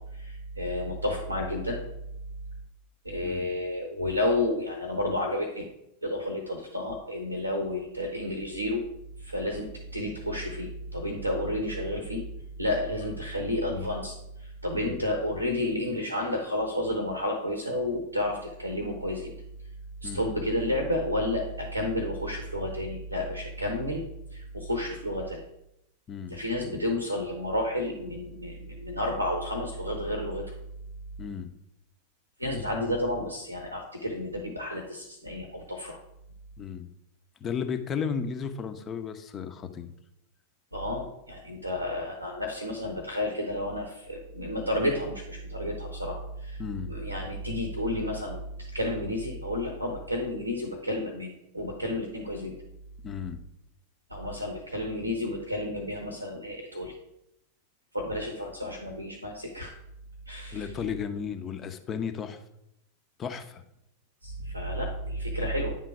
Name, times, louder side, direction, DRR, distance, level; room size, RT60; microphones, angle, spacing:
voice 1, 0.1-1.8 3.0-5.6 6.0-8.8 9.2-12.2 12.6-19.3 20.0-24.0 24.3-25.4 26.3-30.4 32.4-36.0 40.7-46.6 46.9-48.4 48.7-52.5 54.1-56.9 57.9-59.7 60.3-60.7 64.2-65.7, left 1 dB, 90° right, 3 dB, 0.9 m, -31 dB
voice 2, 3.2-3.5 14.8-15.0 20.0-20.2 26.1-26.4 31.2-31.5 36.6-36.9 37.4-39.9 46.6-46.9 53.0-53.4 60.5-62.4 63.2-63.6, left 6 dB, 25° left, 8 dB, 0.7 m, -34 dB
9.2 x 3.8 x 4.7 m, 0.82 s
figure-of-eight pair, 90°, 0 cm